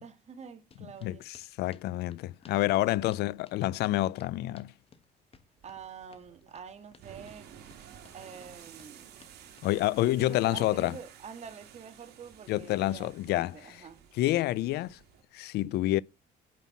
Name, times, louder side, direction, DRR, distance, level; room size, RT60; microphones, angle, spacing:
voice 1, 0.0-1.2 2.8-2.9 5.6-7.5 8.1-9.1 10.0-14.0, right 7 dB, 40° right, 1.9 m, -47 dB
sound 1, 0.7-10.9, left 5 dB, 35° left, 1.5 m, -59 dB
voice 2, 1.0-4.7 9.6-11.0 12.5-13.8 14.1-15.0 15.3-16.0, left 16 dB, 75° left, 0.5 m, -28 dB
sound 2, 5.6-15.2, right 9 dB, 75° right, 2.5 m, -53 dB
9.5 x 5.6 x 7.2 m
cardioid pair, 110°, 17 cm